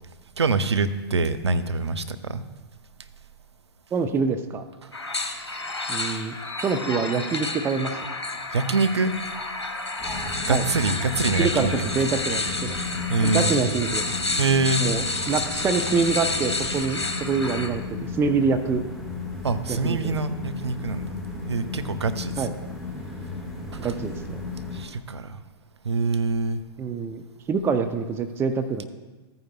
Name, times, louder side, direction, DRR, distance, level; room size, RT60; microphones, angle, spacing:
voice 1, 0.4-2.4 4.8-4.9 8.5-9.1 10.5-11.7 13.1-13.5 14.4-14.9 19.4-21.1 21.4-22.5 23.7-23.9 24.7-25.4 25.8-26.6, right 4 dB, 85° right, 10 dB, 0.6 m, -25 dB
voice 2, 3.9-4.6 5.9-6.4 6.6-8.0 10.5-10.6 11.4-11.7 11.9-12.8 13.2-14.0 14.8-18.8 19.7-20.1 22.4-22.5 23.8-24.4 26.8-27.2 27.5-28.9, right 5 dB, 15° right, 8 dB, 0.5 m, -25 dB
sound 1, 4.9-17.7, left 2 dB, 90° left, 1.0 m, -30 dB
sound 2, 10.0-24.8, left 3 dB, ahead, 1.8 m, -35 dB
14.0 x 9.3 x 2.3 m, 1.3 s
figure-of-eight pair, 110°, 14 cm